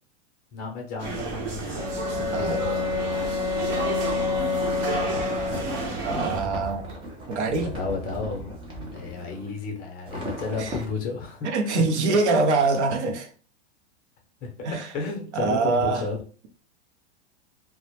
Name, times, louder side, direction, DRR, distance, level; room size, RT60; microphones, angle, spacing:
voice 1, 0.5-3.0 7.7-8.5 8.9-12.2 14.4-16.2, left 4 dB, 25° left, 0.6 m, -33 dB
sound 1, 1.0-6.4, right 3 dB, 55° right, 0.9 m, -31 dB
Bowed string instrument, 1.7-6.1, left 4 dB, 40° right, 1.0 m, -28 dB
sound 2, 4.7-9.5 10.1-10.9, equal, 15° right, 0.4 m, -37 dB
voice 2, 6.0-7.0 7.3-7.7 10.6-10.7 11.4-13.3 14.6-14.9 15.3-16.0, right 3 dB, 75° right, 0.6 m, -24 dB
2.1 x 2.0 x 2.8 m
supercardioid pair, 135°, 34 cm